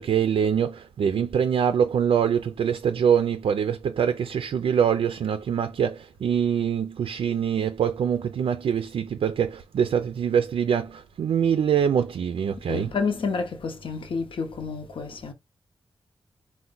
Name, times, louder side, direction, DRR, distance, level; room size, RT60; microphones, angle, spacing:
voice 1, 0.0-12.9, right 8 dB, 80° right, 0.4 m, -24 dB
voice 2, 12.6-15.3, left 4 dB, 65° left, 0.8 m, -29 dB
4.5 x 2.1 x 3.9 m
wide cardioid pair, 125°, 9 cm